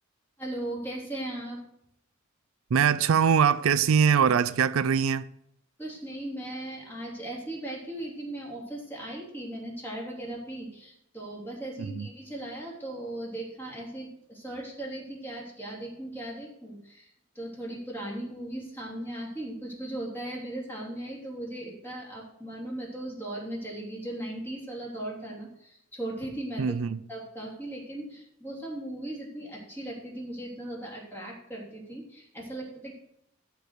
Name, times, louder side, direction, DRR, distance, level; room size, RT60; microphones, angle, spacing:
voice 1, 0.4-1.6 5.8-17.1 17.3-26.7 27.1-32.9, right 1 dB, 10° left, 3.1 m, -38 dB
voice 2, 2.7-5.3 11.8-12.1 26.6-27.0, right 7 dB, 70° right, 0.4 m, -22 dB
13.5 x 4.6 x 6.6 m
head